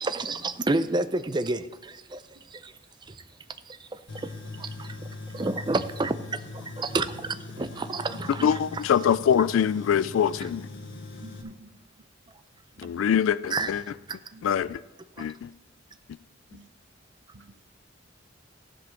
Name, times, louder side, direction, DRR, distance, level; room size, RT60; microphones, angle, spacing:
voice 1, 0.0-0.4 0.7-1.0 1.3-1.6 5.4-6.1 6.9-7.0 7.9-8.0 8.4-8.5 13.5-13.7, right 2 dB, 20° right, 0.5 m, -25 dB
Tools, 4.1-11.4, left 2 dB, 70° left, 1.5 m, -41 dB
voice 2, 8.3-10.7 12.8-13.8 14.4-14.8 15.2-15.5, left 8 dB, 90° left, 0.3 m, -24 dB
voice 3, 11.2-11.7 12.8-13.0 14.3-14.5 16.5-16.7 17.3-17.7, right 2 dB, 60° right, 0.7 m, -47 dB
14.5 x 5.2 x 6.2 m
head